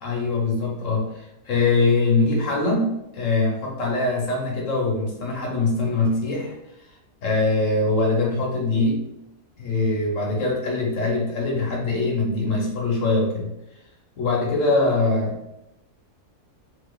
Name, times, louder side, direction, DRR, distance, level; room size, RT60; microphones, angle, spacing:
voice 1, 0.0-6.6 7.2-9.0 9.6-13.5 14.2-15.4, left 3 dB, 60° left, -2 dB, 1.0 m, -23 dB
3.9 x 2.8 x 2.2 m, 0.87 s
omnidirectional pair, 1.6 m